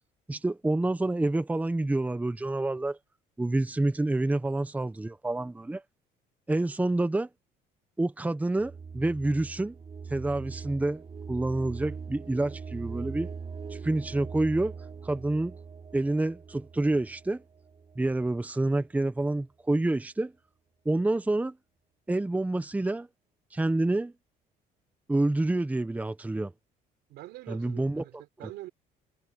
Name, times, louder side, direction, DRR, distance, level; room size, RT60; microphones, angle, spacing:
voice 1, 0.3-3.0 3.4-5.8 6.5-7.3 8.0-9.7 10.1-11.0 11.3-13.3 13.7-14.7 15.0-15.5 15.9-17.4 18.0-20.3 20.8-21.5 22.1-23.1 23.5-24.1 25.1-26.5 27.5-28.0, right 2 dB, 10° right, 0.9 m, -28 dB
sound 1, 8.6-18.4, right 5 dB, 35° right, 4.2 m, -41 dB
voice 2, 27.1-28.7, right 17 dB, 85° right, 4.4 m, -44 dB
cardioid pair, 110°, 17 cm